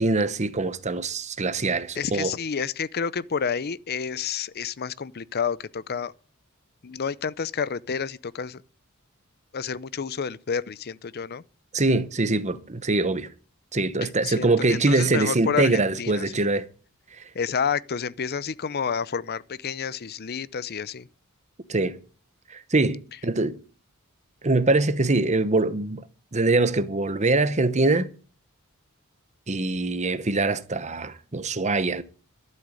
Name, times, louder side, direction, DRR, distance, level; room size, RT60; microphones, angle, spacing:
voice 1, 0.0-2.3 11.7-13.3 13.7-16.7 21.7-22.0 22.5-23.6 24.4-26.0 26.3-28.1 29.5-32.0, right 2 dB, 30° right, 1.0 m, -23 dB
voice 2, 2.0-6.1 6.8-8.6 9.5-11.4 14.0-16.2 17.3-21.1, left 6 dB, 45° left, 0.6 m, -30 dB
12.0 x 7.6 x 9.6 m
head